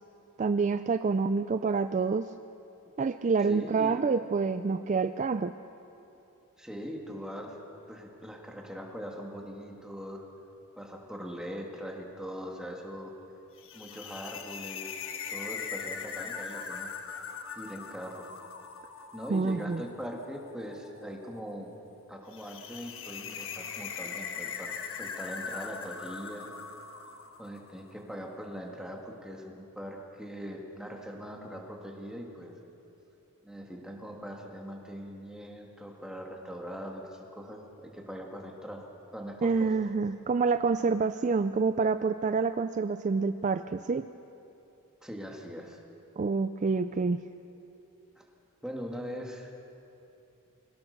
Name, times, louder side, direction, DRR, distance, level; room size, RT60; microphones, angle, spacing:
voice 1, 0.4-2.3 3.0-5.5 19.3-19.8 39.4-44.1 46.2-47.3, right 4 dB, 35° right, 11 dB, 0.3 m, -27 dB
voice 2, 3.4-4.0 6.6-7.6 7.9-10.3 10.8-13.1 13.7-15.0 15.3-16.9 17.6-18.3 19.1-21.7 22.1-26.5 27.4-32.6 33.4-38.9 39.1-39.8 45.0-45.8 48.2-48.3 48.6-49.5, equal, 5° right, 0 dB, 2.0 m, -41 dB
sound 1, 13.6-27.9, left 6 dB, 60° left, 1.4 m, -41 dB
22.5 x 18.0 x 6.6 m, 2.9 s
head